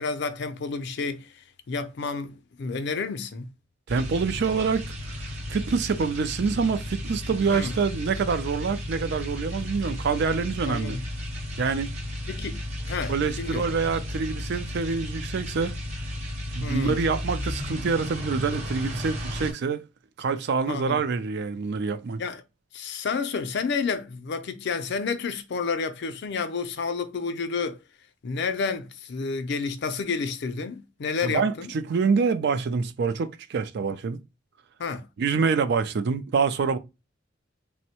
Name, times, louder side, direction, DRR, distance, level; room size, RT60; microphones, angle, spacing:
voice 1, 0.0-3.5 7.5-7.8 10.7-11.0 12.3-12.6 12.9-13.7 16.6-17.0 20.7-21.0 22.2-22.4 22.7-27.8 28.2-31.7 34.8-35.0, left 4 dB, 60° left, 0.4 m, -30 dB
sound 1, 3.9-19.5, left 1 dB, 35° right, 0.9 m, -34 dB
voice 2, 3.9-11.0 11.6-11.9 13.1-15.7 16.5-19.8 20.2-22.2 31.2-34.2 35.2-36.8, right 5 dB, 60° right, 0.4 m, -26 dB
3.4 x 2.1 x 2.7 m
head